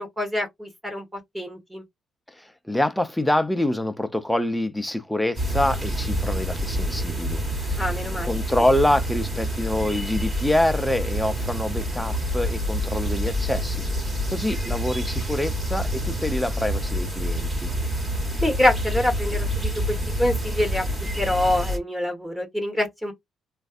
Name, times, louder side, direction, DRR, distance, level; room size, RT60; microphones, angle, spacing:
voice 1, 0.0-1.8 7.8-8.3 14.7-14.8 18.4-19.7 20.2-23.1, left 1 dB, 10° right, 1.2 m, -25 dB
voice 2, 2.3-7.9 8.2-13.8 14.3-17.7, left 1 dB, 5° left, 0.5 m, -26 dB
sound 1, 5.4-21.8, equal, 30° right, 1.3 m, -27 dB
3.2 x 2.5 x 2.4 m
cardioid pair, 90°, 0 cm